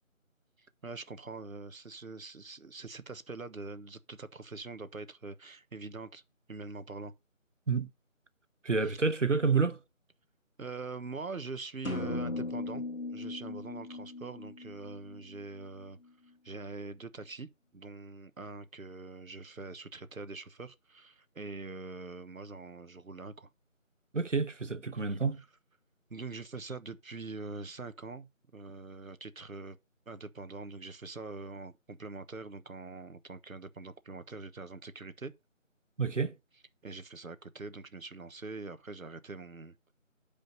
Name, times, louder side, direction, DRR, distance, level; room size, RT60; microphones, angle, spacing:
voice 1, 0.8-6.2 6.5-7.1 8.8-9.0 10.6-12.8 13.1-16.0 16.4-17.5 17.7-23.5 24.9-25.2 26.1-28.3 28.5-29.8 30.1-35.3 36.8-39.8, right 3 dB, 85° right, 1.2 m, -43 dB
voice 2, 8.6-9.8 24.1-25.4 36.0-36.3, right 4 dB, 65° right, 1.0 m, -29 dB
sound 1, 11.8-15.6, left 2 dB, 90° left, 2.0 m, -38 dB
9.0 x 5.1 x 5.4 m
figure-of-eight pair, 180°, 40 cm